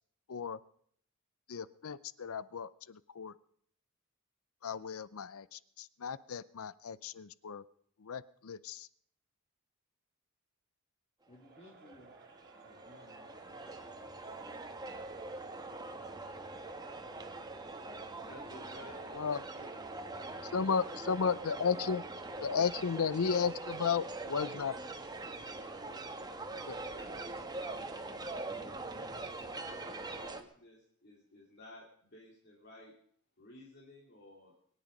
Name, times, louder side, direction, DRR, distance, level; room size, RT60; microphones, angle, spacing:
voice 1, 0.3-0.6 1.5-3.3 4.6-7.6 8.0-8.9 19.1-19.4 20.5-22.0 22.4-24.7 26.7-26.8, left 6 dB, 80° left, 18 dB, 0.6 m, -34 dB
voice 2, 11.3-12.1 12.6-14.1 18.2-19.2, left 1 dB, 30° left, -2 dB, 2.7 m, -60 dB
sound 1, 11.3-30.4, right 2 dB, 20° right, 1.3 m, -43 dB
Crowd, 11.3-19.4, right 4 dB, 50° right, 2.2 m, -60 dB
voice 3, 18.2-21.9 22.2-24.2 25.3-27.3 27.7-28.8 29.1-31.8 32.1-32.9 33.4-34.5, left 1 dB, 50° left, -3 dB, 3.1 m, -56 dB
23.5 x 10.0 x 5.3 m, 0.63 s
head